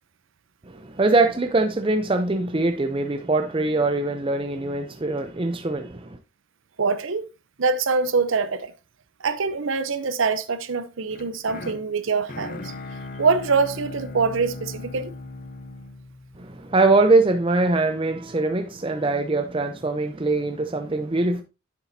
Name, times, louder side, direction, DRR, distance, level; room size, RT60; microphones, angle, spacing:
voice 1, 0.7-6.2 16.4-21.4, right 2 dB, 25° right, 0.5 m, -22 dB
voice 2, 6.8-7.3 7.6-8.7 9.2-12.7 13.2-15.1, right 4 dB, 70° right, 0.7 m, -24 dB
sound 1, 11.1-17.2, left 2 dB, 40° left, 0.9 m, -38 dB
9.9 x 7.1 x 2.7 m
head